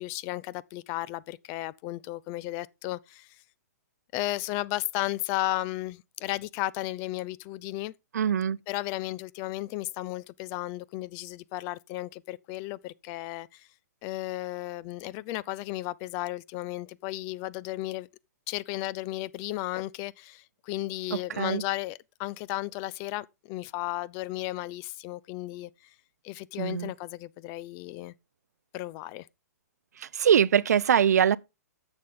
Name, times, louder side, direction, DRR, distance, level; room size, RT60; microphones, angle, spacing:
voice 1, 0.0-3.4 4.1-7.9 8.7-13.7 14.0-18.1 18.5-25.9 26.2-28.1 28.7-29.3, left 17 dB, 30° left, 0.4 m, -34 dB
voice 2, 8.1-8.6 21.1-21.6 26.6-26.9 30.1-31.4, right 8 dB, 70° right, 0.5 m, -23 dB
10.5 x 7.0 x 3.8 m
hypercardioid pair, 130°, 9 cm